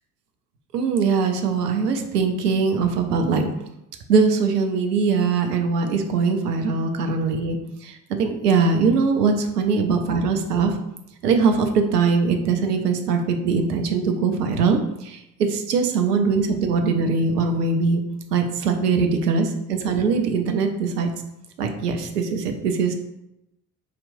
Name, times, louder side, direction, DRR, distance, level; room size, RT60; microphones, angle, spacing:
voice 1, 0.7-3.5 4.1-7.6 7.8-7.9 8.2-10.7 11.2-14.8 15.1-18.0 18.3-21.1 21.6-22.9, right 5 dB, 80° right, 5 dB, 0.6 m, -21 dB
4.9 x 2.9 x 2.6 m, 0.85 s
figure-of-eight pair, 55°, 47 cm